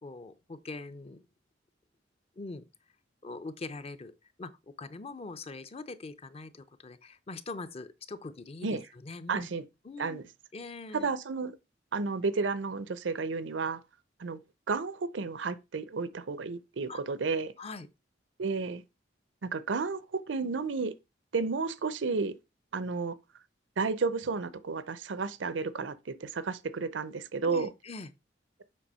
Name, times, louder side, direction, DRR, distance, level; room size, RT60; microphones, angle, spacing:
voice 1, 0.0-1.2 2.4-2.6 3.2-9.5 9.8-10.2 10.5-11.1 16.9-17.0 17.6-17.9 27.4-28.1, left 3 dB, 35° left, 0.6 m, -43 dB
voice 2, 9.3-9.6 10.0-10.2 10.9-11.6 11.9-13.8 14.2-14.4 14.7-17.5 18.4-18.8 19.4-21.0 21.3-22.4 22.7-23.2 23.8-27.7, right 4 dB, 85° right, 0.6 m, -32 dB
7.5 x 3.4 x 5.5 m
head